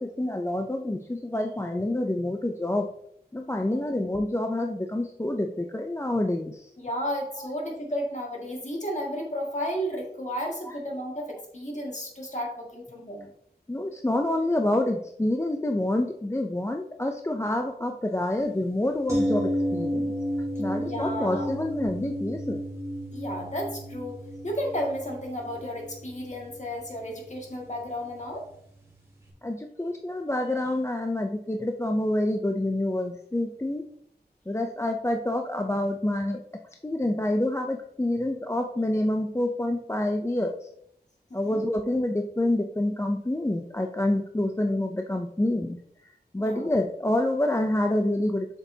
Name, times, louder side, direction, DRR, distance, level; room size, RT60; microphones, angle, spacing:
voice 1, 0.0-2.9 3.3-6.7 7.4-7.5 13.7-20.1 20.6-22.6 29.4-33.9 34.5-36.4 36.8-40.7 41.3-45.8 46.3-48.5, left 1 dB, 15° left, 4 dB, 0.4 m, -27 dB
voice 2, 6.8-13.3 20.8-21.5 23.1-28.5 41.3-41.6 46.4-46.7, equal, 45° left, -1 dB, 1.9 m, -33 dB
sound 1, 19.1-29.0 29.3-29.4, equal, 15° right, 2.1 m, -32 dB
7.5 x 6.1 x 2.7 m, 0.74 s
wide cardioid pair, 55°, 17 cm